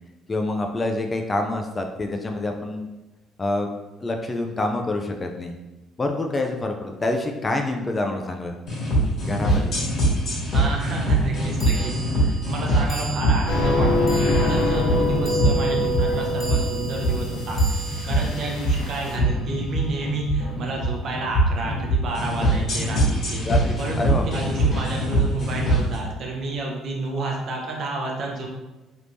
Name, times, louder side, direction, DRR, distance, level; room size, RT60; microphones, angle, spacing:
voice 1, 0.3-2.9 3.4-3.7 4.0-5.6 6.0-8.5 9.2-9.7 23.4-24.4, left 2 dB, 25° left, 4 dB, 0.3 m, -26 dB
sound 1, 8.7-26.0, right 1 dB, 50° left, 1.5 m, -23 dB
sound 2, 9.5-9.6 11.6-20.0, right 3 dB, 5° right, 0.8 m, -39 dB
voice 2, 10.5-17.6 18.0-23.4 23.8-28.5, right 2 dB, 55° right, -1 dB, 0.8 m, -30 dB
sound 3, 13.5-19.2, left 1 dB, 90° left, 0.5 m, -24 dB
3.4 x 3.0 x 2.6 m, 1.1 s
cardioid pair, 120°, 0 cm